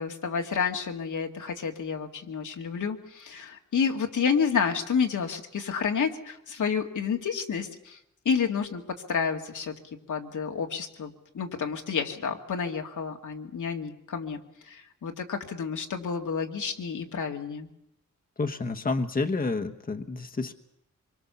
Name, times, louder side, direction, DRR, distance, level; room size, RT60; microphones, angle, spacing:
voice 1, 0.0-8.0 8.2-9.8 10.1-17.7, left 6 dB, 80° left, 3 dB, 2.4 m, -30 dB
voice 2, 18.4-20.5, left 3 dB, 30° left, 6 dB, 1.2 m, -29 dB
25.5 x 23.5 x 7.0 m, 0.77 s
wide cardioid pair, 130°, 30 cm